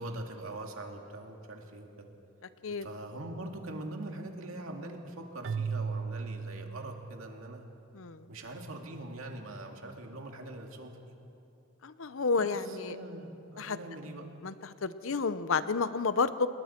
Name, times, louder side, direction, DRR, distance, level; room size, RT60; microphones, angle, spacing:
voice 1, 0.0-2.1 2.8-7.6 8.3-11.1 12.4-14.2, right 1 dB, 85° right, 2 dB, 2.3 m, -42 dB
Keyboard (musical), 5.4-7.7, right 5 dB, 60° right, 0.4 m, -36 dB
voice 2, 7.9-8.3 11.8-13.0 13.6-13.8 14.4-16.5, left 4 dB, 70° left, 13 dB, 0.7 m, -31 dB
28.5 x 20.5 x 4.5 m, 2.9 s
head